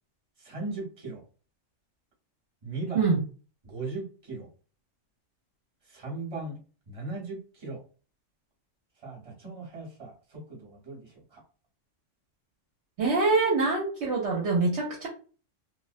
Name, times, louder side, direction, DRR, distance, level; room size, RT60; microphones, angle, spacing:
voice 1, 0.4-1.2 2.6-3.1 3.6-4.5 5.9-6.6 6.9-7.8 9.0-11.4, right 3 dB, 30° right, -2 dB, 0.9 m, -38 dB
voice 2, 13.0-15.1, right 3 dB, 65° right, -2 dB, 0.8 m, -25 dB
2.3 x 2.1 x 2.5 m, 0.37 s
omnidirectional pair, 1.3 m